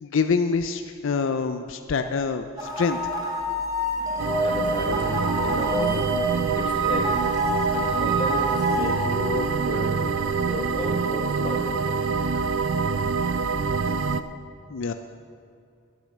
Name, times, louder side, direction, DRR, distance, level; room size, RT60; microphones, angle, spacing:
voice 1, 0.0-3.0 14.7-14.9, left 5 dB, 65° left, 8 dB, 0.4 m, -25 dB
sound 1, 2.6-9.0, right 1 dB, 20° right, 1.9 m, -27 dB
sound 2, 4.2-14.2, right 5 dB, 70° right, 0.5 m, -25 dB
voice 2, 4.4-6.1 6.6-7.2 8.0-10.0 10.5-11.8, left 1 dB, 25° left, 1 dB, 1.3 m, -33 dB
11.5 x 9.0 x 6.5 m, 2.4 s
head